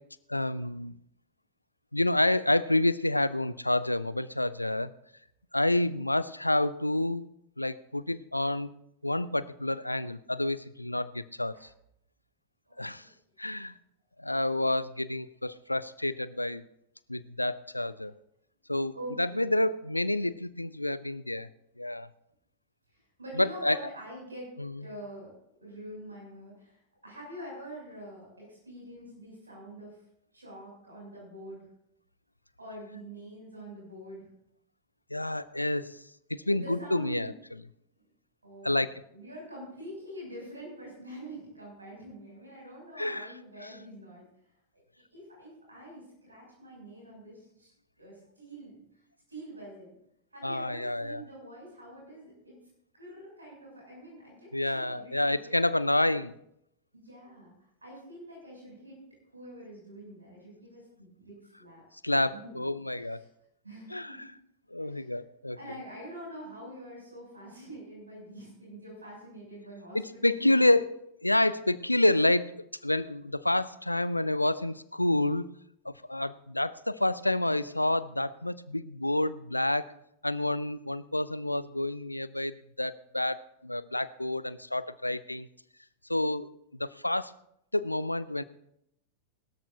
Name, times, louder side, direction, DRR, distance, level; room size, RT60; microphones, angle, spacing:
voice 1, 0.3-1.0 1.9-4.9 5.5-7.3 7.6-8.7 9.0-11.7 12.8-13.0 13.4-13.7 14.2-16.6 17.1-18.1 18.7-21.5 21.8-22.1 23.4-23.8 24.6-24.7 35.1-35.9 36.3-37.3 38.6-38.9 43.0-43.3 50.4-51.2 54.5-56.3 62.0-63.2 63.9-64.2 64.7-65.6 69.9-75.5 75.9-79.9 80.2-85.5 86.1-86.5 86.8-87.3 87.7-88.4, left 1 dB, 85° left, 17 dB, 0.5 m, -28 dB
voice 2, 12.7-13.1 18.9-19.5 22.9-24.5 24.8-25.3 25.6-30.0 30.3-31.6 32.6-34.3 36.4-37.3 38.0-38.1 38.4-44.2 45.1-47.7 48.0-48.8 49.3-49.9 50.3-52.6 52.9-55.6 56.9-57.5 57.8-59.0 59.3-62.7 63.0-63.3 63.6-64.3 64.8-65.1 65.6-70.6, right 1 dB, 80° right, -3 dB, 7.0 m, -46 dB
21.5 x 13.0 x 2.8 m, 0.77 s
figure-of-eight pair, 90°, 0 cm